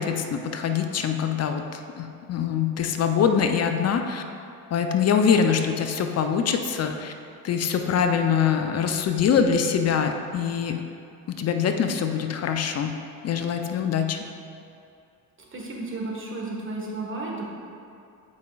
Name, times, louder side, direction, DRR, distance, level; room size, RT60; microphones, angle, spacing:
voice 1, 0.0-4.2 4.7-7.1 7.4-10.8 11.3-12.9 13.2-14.2, left 7 dB, 35° left, 6 dB, 0.5 m, -24 dB
voice 2, 15.5-17.4, right 2 dB, 25° right, -2 dB, 1.4 m, -33 dB
8.2 x 5.2 x 2.3 m, 2.6 s
hypercardioid pair, 65°, 46 cm